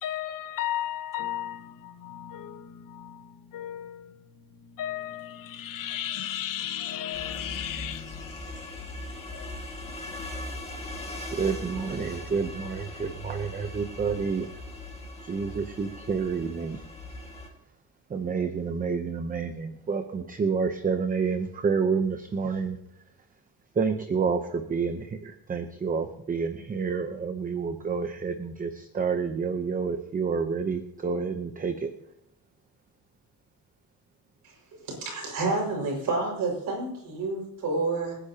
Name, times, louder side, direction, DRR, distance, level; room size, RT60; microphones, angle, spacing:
voice 1, 0.0-4.2 4.5-9.8, left 11 dB, 55° left, 1.1 m, -35 dB
sound 1, 7.1-17.5, left 2 dB, 15° left, 2.0 m, -40 dB
voice 2, 11.3-14.5 15.2-16.8 18.1-22.8 23.7-31.9, right 5 dB, 20° right, 0.8 m, -29 dB
voice 3, 34.4-38.2, right 3 dB, 55° right, 5.7 m, -29 dB
27.0 x 10.0 x 2.9 m
cardioid pair, 150°, 38 cm